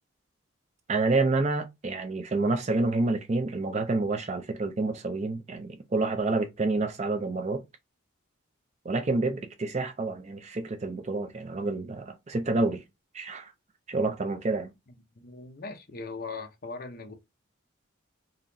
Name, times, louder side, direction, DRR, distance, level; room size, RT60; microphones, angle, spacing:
voice 1, 0.9-7.6 8.8-12.8 13.1-13.5 13.9-14.7, right 3 dB, 35° right, 0.4 m, -28 dB
voice 2, 15.1-17.1, left 3 dB, 45° left, 0.7 m, -39 dB
4.0 x 2.9 x 2.6 m
head